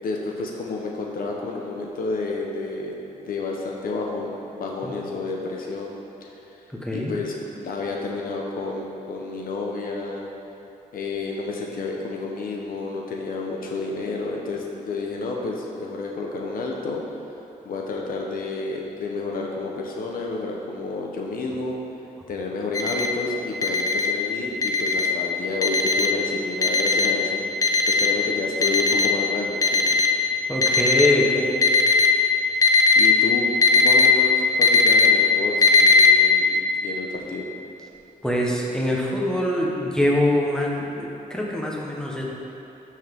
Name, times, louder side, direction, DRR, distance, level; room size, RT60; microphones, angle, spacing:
voice 1, 0.0-6.0 6.9-10.3 10.9-17.0 17.6-21.8 22.3-27.4 27.9-29.9 33.0-36.5 36.8-37.5, left 3 dB, 75° left, -1 dB, 1.0 m, -30 dB
voice 2, 6.8-7.1 30.5-31.6 38.2-40.7 41.0-42.2, left 1 dB, 5° left, -3 dB, 1.1 m, -23 dB
Alarm, 22.7-23.1 23.6-24.1 24.6-25.1 25.6-26.1 26.6-27.1 27.6-28.1 28.6-29.1 29.6-30.1 30.6-31.1 31.6-32.1 32.6-33.1 33.6-34.1 34.6-35.1 35.6-36.1, left 4 dB, 25° left, 0.6 m, -18 dB
12.5 x 5.7 x 3.7 m, 3.0 s
wide cardioid pair, 150°, 15 cm